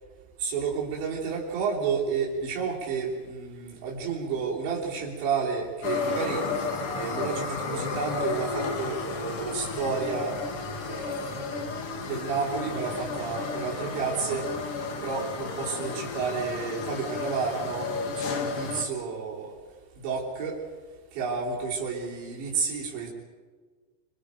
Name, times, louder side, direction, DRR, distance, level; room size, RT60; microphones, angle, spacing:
voice 1, 0.4-6.5 6.9-10.4 10.8-11.6 12.0-14.5 15.0-19.5 20.0-20.6 21.1-23.1, right 5 dB, 85° right, -3 dB, 5.8 m, -31 dB
sound 1, 5.8-18.8, left 4 dB, 70° left, 1.3 m, -33 dB
26.5 x 25.5 x 5.1 m, 1.4 s
omnidirectional pair, 5.1 m